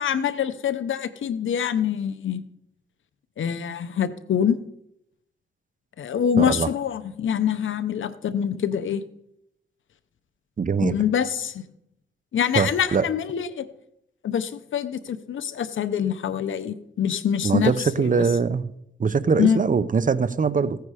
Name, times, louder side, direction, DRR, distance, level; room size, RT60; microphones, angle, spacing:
voice 1, 0.0-2.4 3.4-4.6 6.0-9.0 10.8-11.6 12.3-13.7 14.2-18.3 19.4-19.6, left 8 dB, 85° left, 0.8 m, -25 dB
voice 2, 6.4-6.7 10.6-10.9 12.5-13.0 17.4-18.7 19.0-20.8, right 5 dB, 45° right, 0.7 m, -22 dB
15.5 x 9.3 x 5.0 m
cardioid pair, 85°, 20 cm